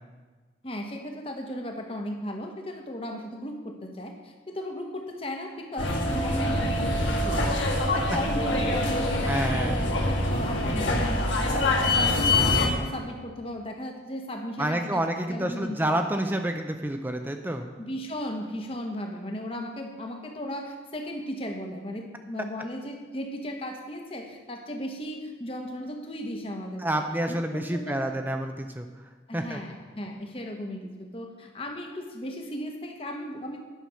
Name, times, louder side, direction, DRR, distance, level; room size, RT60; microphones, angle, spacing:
voice 1, 0.6-7.5 7.8-15.8 17.8-28.1 29.3-33.6, equal, 30° left, 3 dB, 1.0 m, -36 dB
sound 1, 5.8-12.7, left 2 dB, 85° left, 1.5 m, -25 dB
voice 2, 9.3-9.8 14.6-17.7 26.8-28.9 29.3-29.6, right 1 dB, 10° right, 5 dB, 0.4 m, -28 dB
10.0 x 5.9 x 6.3 m, 1.3 s
head